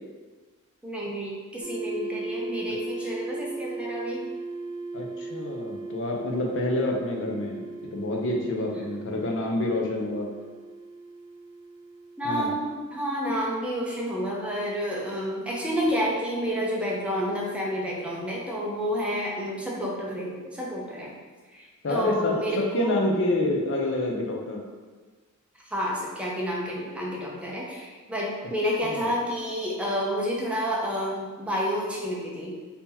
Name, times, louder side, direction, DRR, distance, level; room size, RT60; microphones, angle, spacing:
voice 1, 0.8-4.2 12.2-21.2 21.5-23.0 25.7-32.6, equal, 5° right, -4 dB, 0.6 m, -29 dB
sound 1, 1.6-12.3, right 3 dB, 75° right, 0.5 m, -37 dB
voice 2, 4.9-7.6 7.9-10.3 12.2-12.5 21.8-24.6 28.8-29.1, left 2 dB, 60° left, 0 dB, 0.6 m, -28 dB
2.8 x 2.8 x 3.7 m, 1.4 s
head